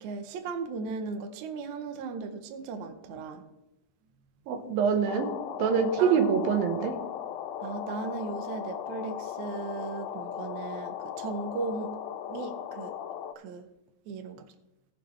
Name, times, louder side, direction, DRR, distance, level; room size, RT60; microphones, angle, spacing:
voice 1, 0.0-3.5 6.0-6.3 7.6-12.0 12.3-12.9 13.4-13.7 14.1-14.5, right 4 dB, 70° right, 2.0 m, -37 dB
voice 2, 4.5-5.3 5.6-6.9, right 7 dB, 90° right, 3.0 m, -25 dB
sound 1, 5.1-13.3, left 9 dB, 85° left, 2.3 m, -37 dB
18.0 x 6.8 x 3.2 m
omnidirectional pair, 4.0 m